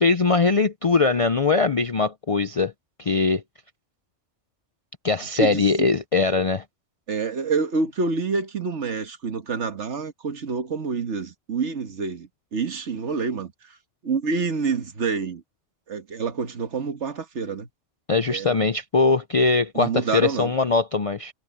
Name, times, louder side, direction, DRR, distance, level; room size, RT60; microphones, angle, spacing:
voice 1, 0.0-2.7 3.0-3.4 5.0-6.6 18.1-21.3, left 4 dB, 45° left, 0.4 m, -21 dB
voice 2, 5.4-5.9 7.1-13.8 14.0-15.4 15.9-17.7 18.3-18.6 19.7-20.5, right 4 dB, 70° right, 1.7 m, -27 dB
omnidirectional pair, 1.2 m